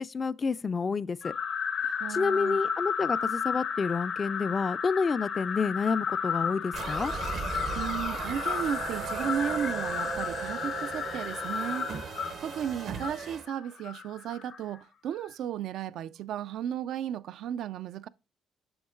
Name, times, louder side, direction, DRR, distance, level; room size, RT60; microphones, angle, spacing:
voice 1, 0.0-1.3 2.1-7.1, left 5 dB, 35° left, 0.3 m, -29 dB
sound 1, 1.2-14.6, left 6 dB, 65° left, 0.8 m, -33 dB
voice 2, 2.0-2.6 7.7-12.1 12.4-18.1, right 9 dB, 80° right, 0.3 m, -34 dB
sound 2, 6.7-13.4, right 6 dB, 65° right, 0.7 m, -37 dB
7.8 x 6.3 x 2.4 m
cardioid pair, 90°, 0 cm